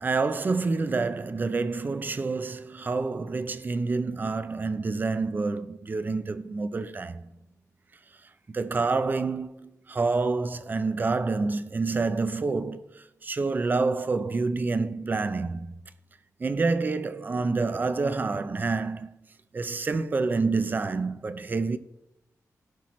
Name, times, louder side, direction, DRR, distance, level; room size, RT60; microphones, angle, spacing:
voice 1, 0.0-7.2 8.5-15.7 16.4-19.1 19.5-21.8, right 3 dB, 30° right, 0.5 m, -28 dB
16.5 x 5.8 x 3.1 m
wide cardioid pair, 150°, 6 cm